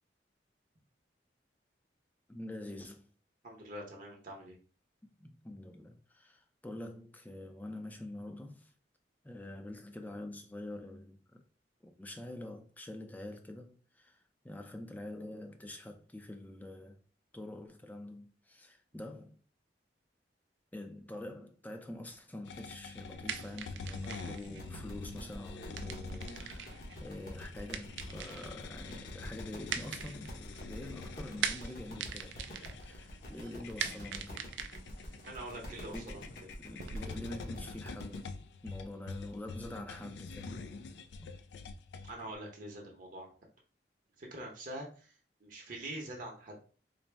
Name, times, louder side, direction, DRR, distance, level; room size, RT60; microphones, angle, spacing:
voice 1, 2.3-3.1 5.2-8.7 9.2-11.2 11.8-17.0 17.3-19.4 20.7-34.5 34.9-35.0 35.9-40.7 41.2-41.3, left 1 dB, 10° left, 0.4 m, -46 dB
voice 2, 3.4-4.6 35.2-36.2 42.1-43.3 44.2-45.1 45.4-46.6, right 1 dB, 50° right, 0.8 m, -44 dB
sound 1, 22.4-42.3, left 4 dB, 75° left, 0.3 m, -47 dB
sound 2, 22.9-37.0, right 7 dB, 90° right, 0.4 m, -43 dB
sound 3, 24.4-38.2, equal, 55° left, 1.0 m, -48 dB
4.0 x 2.1 x 3.3 m
head